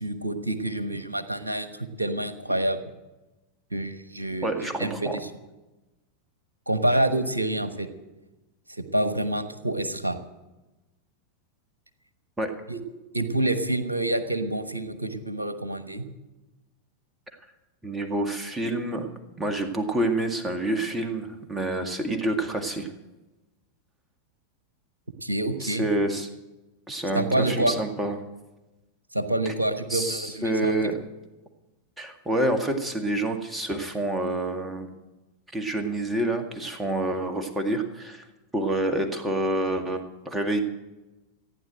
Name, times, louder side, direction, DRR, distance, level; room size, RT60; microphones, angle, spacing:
voice 1, 0.0-2.8 3.7-4.5 4.8-5.3 6.7-7.9 8.7-10.2 12.7-12.8 13.1-16.1 25.2-25.8 27.1-27.7 29.1-30.9, right 1 dB, 80° right, 10 dB, 1.1 m, -27 dB
voice 2, 4.4-5.2 12.4-12.5 17.8-19.1 19.4-22.9 25.6-26.3 26.9-28.2 29.5-29.6 29.9-31.0 32.0-34.9 35.5-38.2 38.5-40.6, right 1 dB, 10° right, 4 dB, 2.0 m, -27 dB
15.5 x 9.7 x 7.7 m, 1.1 s
figure-of-eight pair, 90°, 0 cm